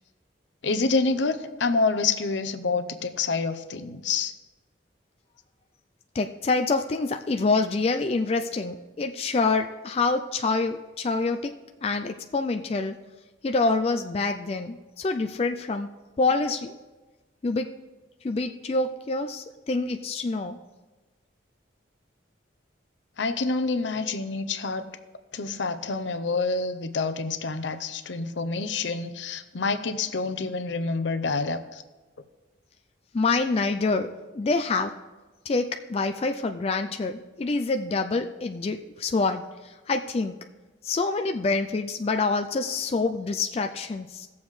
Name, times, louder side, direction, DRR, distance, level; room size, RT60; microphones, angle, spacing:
voice 1, 0.6-4.3 23.2-24.8 25.3-31.8, left 4 dB, 80° left, 10 dB, 0.7 m, -27 dB
voice 2, 6.1-11.5 11.8-13.0 13.4-15.9 16.2-16.8 17.4-17.7 18.2-20.6 33.1-34.9 35.5-40.4 40.8-44.3, left 3 dB, 30° left, 6 dB, 0.3 m, -26 dB
18.0 x 7.1 x 3.2 m, 1.2 s
head